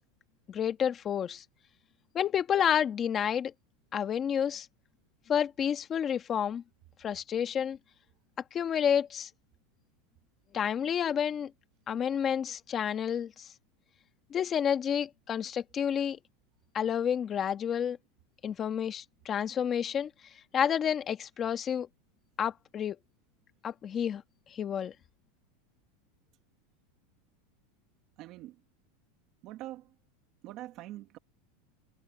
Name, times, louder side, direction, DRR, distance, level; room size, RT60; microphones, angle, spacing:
voice 1, 0.5-1.4 2.1-3.5 3.9-4.7 5.3-6.6 7.0-7.8 8.5-9.3 10.5-11.5 11.9-13.5 14.3-16.2 16.7-18.0 18.4-20.1 20.5-21.9 22.4-23.0 23.6-24.2 24.5-24.9, left 8 dB, 20° left, 1.5 m, -30 dB
voice 2, 28.2-28.6 29.4-29.9 30.4-31.2, right 15 dB, 40° right, 1.6 m, -43 dB
supercardioid pair, 165°, 0 cm